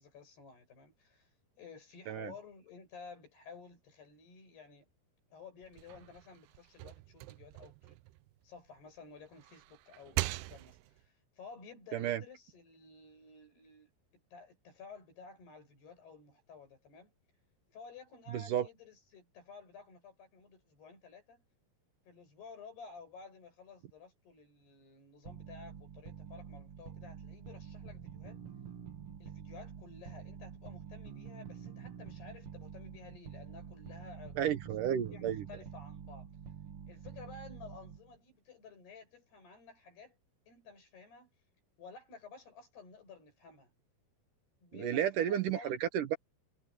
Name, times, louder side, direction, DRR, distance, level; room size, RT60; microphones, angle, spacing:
voice 1, 0.0-4.9 5.3-8.0 8.4-17.1 17.7-21.4 22.1-28.4 29.2-34.4 35.1-36.3 36.9-40.2 40.5-41.3 41.8-43.7 44.6-45.8, left 5 dB, 90° left, 9.8 m, -53 dB
sound 1, 5.6-8.8 9.3-11.1, right 18 dB, 85° right, 2.6 m, -41 dB
voice 2, 18.3-18.7 34.4-35.4 44.8-46.2, right 10 dB, 65° right, 2.4 m, -32 dB
sound 2, 25.2-38.2, right 8 dB, 45° right, 2.4 m, -48 dB
omnidirectional pair, 4.5 m